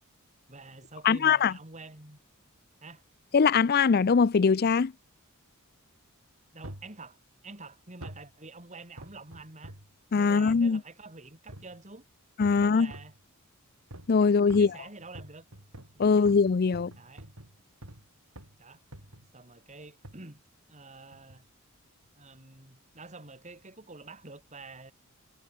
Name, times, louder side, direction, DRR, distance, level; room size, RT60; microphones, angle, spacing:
voice 1, 0.5-2.2 2.8-3.0 6.5-9.7 10.2-12.0 12.5-13.2 14.2-15.5 15.9-16.3 16.9-17.3 18.6-18.8 19.3-20.4 20.7-21.5 22.1-24.9, right 3 dB, 30° right, 3.2 m, -48 dB
voice 2, 1.0-1.5 3.3-4.9 10.1-10.8 12.4-12.9 14.1-14.7 16.0-16.9, left 5 dB, 45° left, 0.4 m, -22 dB
sound 1, 6.6-7.0 8.0-8.3 9.0-9.9 10.5-10.7 11.5-11.8 12.4-13.2 13.9-14.2 14.5-18.1 18.4-18.6 18.9-19.3 20.0-20.3 21.1-21.4 22.0-22.1, right 1 dB, 75° right, 5.9 m, -47 dB
head